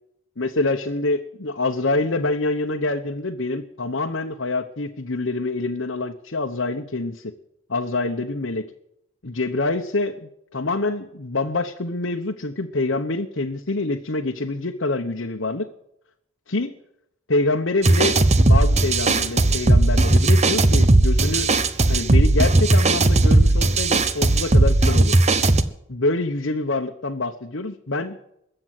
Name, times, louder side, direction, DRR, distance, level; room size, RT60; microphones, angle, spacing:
voice 1, 0.4-7.3 7.7-8.7 9.2-15.7 16.5-16.7 17.3-21.5 21.9-25.2 25.9-28.2, left 2 dB, 60° left, 3 dB, 1.1 m, -26 dB
sound 1, 17.8-25.6, right 2 dB, 30° right, 0.9 m, -17 dB
21.5 x 7.9 x 7.8 m, 0.78 s
head